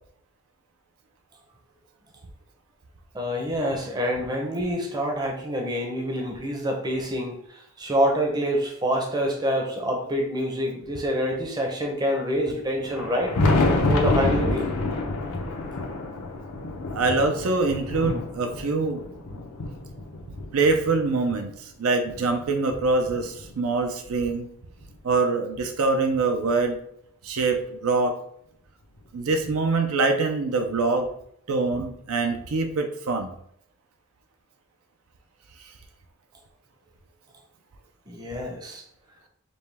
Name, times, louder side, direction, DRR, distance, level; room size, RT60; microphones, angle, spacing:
voice 1, 3.1-13.4 13.7-14.7 38.1-38.8, equal, 20° right, 0 dB, 0.6 m, -26 dB
Thunder, 12.8-21.4 22.0-23.8 24.9-25.0 25.6-25.7 27.5-27.6 29.0-29.1 30.7-30.8, left 2 dB, 85° left, 0.7 m, -28 dB
voice 2, 16.9-19.0 20.5-24.5 25.0-26.8 27.2-28.2 29.1-31.1 31.5-33.3, right 3 dB, 75° right, 5 dB, 0.5 m, -24 dB
5.2 x 2.2 x 3.3 m, 0.70 s
head